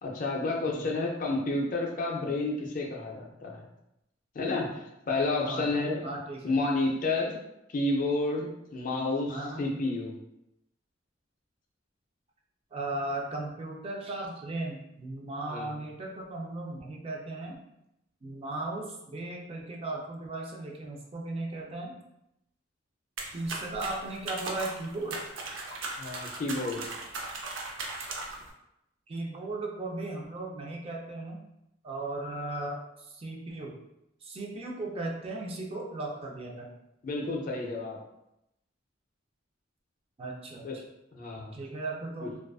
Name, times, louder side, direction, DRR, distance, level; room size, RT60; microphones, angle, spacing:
voice 1, 0.0-3.6 4.3-6.0 6.4-7.4 7.7-10.1 15.5-15.7 26.0-26.8 37.0-38.0 40.6-40.8 41.1-41.6 42.2-42.3, left 2 dB, 45° left, 0 dB, 0.4 m, -30 dB
voice 2, 5.4-6.6 9.3-9.6 12.7-17.6 18.2-21.9 23.3-25.2 29.1-31.4 31.8-33.8 34.2-36.7 40.2-40.7 41.4-42.4, right 2 dB, 30° right, -1 dB, 0.3 m, -36 dB
sound 1, 23.2-28.5, right 3 dB, 85° right, 0.5 m, -38 dB
2.3 x 2.3 x 2.3 m, 0.85 s
head